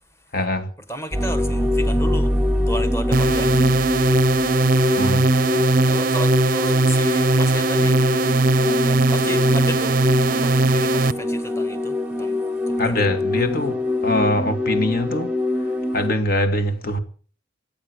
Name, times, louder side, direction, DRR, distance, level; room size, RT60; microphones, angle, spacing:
voice 1, 0.3-0.7 5.0-5.3 12.8-17.0, left 1 dB, 50° left, 2.2 m, -23 dB
voice 2, 0.9-2.3 2.7-3.5 5.5-8.0 8.6-13.5, equal, 15° left, 1.7 m, -34 dB
sound 1, 1.1-16.1, left 1 dB, 5° right, 1.1 m, -24 dB
sound 2, 3.1-11.1, right 2 dB, 50° right, 0.6 m, -19 dB
23.0 x 9.1 x 6.4 m
head